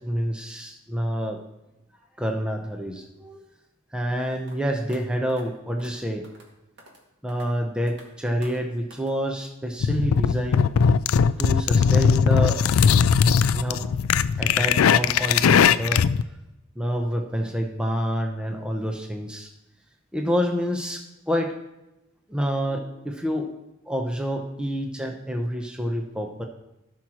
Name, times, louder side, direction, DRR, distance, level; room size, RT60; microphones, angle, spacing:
voice 1, 0.0-1.4 2.2-3.4 3.9-6.2 7.2-10.7 11.4-12.6 13.5-13.9 14.4-16.0 16.8-19.5 20.1-21.6 22.3-23.5 23.9-26.4, equal, 5° right, 2 dB, 0.8 m, -28 dB
sound 1, 4.5-4.6 4.9-5.0 5.3-5.4 5.8-5.9 6.2-6.5 6.8-7.0 7.3-7.5 7.9-8.1 8.4-8.6 8.9-9.1, right 1 dB, 55° right, 2.1 m, -49 dB
sound 2, 9.8-16.2, left 6 dB, 80° left, 0.4 m, -19 dB
16.5 x 6.3 x 3.0 m, 0.93 s
head